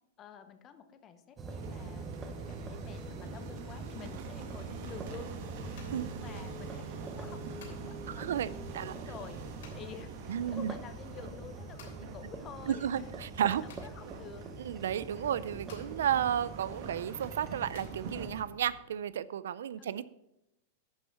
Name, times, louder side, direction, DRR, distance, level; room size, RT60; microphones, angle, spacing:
voice 1, 0.2-5.3 5.6-6.9 7.1-13.1 13.5-14.5 15.1-15.3 19.8-20.0, left 7 dB, 25° left, 10 dB, 0.9 m, -50 dB
sound 1, 1.4-18.4, right 3 dB, 15° right, 0.9 m, -45 dB
sound 2, 1.5-18.3, right 5 dB, 55° right, 1.5 m, -46 dB
sound 3, 5.3-18.8, left 6 dB, 80° left, 3.1 m, -56 dB
voice 2, 8.1-8.5 8.7-8.9 10.3-10.7 12.7-13.6 14.6-20.0, right 9 dB, 85° right, 17 dB, 0.4 m, -32 dB
11.0 x 5.6 x 5.8 m, 0.88 s
supercardioid pair, 155°, 0 cm